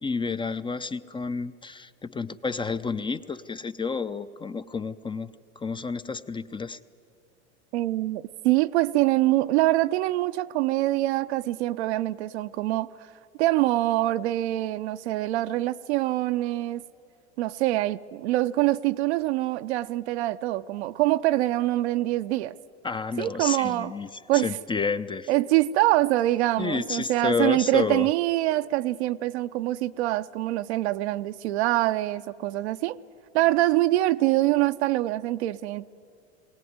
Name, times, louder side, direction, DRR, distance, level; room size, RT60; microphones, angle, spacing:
voice 1, 0.0-6.8 22.8-25.3 26.6-28.1, left 4 dB, 15° left, 0.6 m, -30 dB
voice 2, 7.7-12.9 13.4-16.8 17.4-22.5 23.2-23.9 24.3-24.5 25.3-33.0 33.3-35.9, right 16 dB, 70° right, 0.7 m, -24 dB
21.0 x 18.0 x 9.5 m
hypercardioid pair, 90°, 34 cm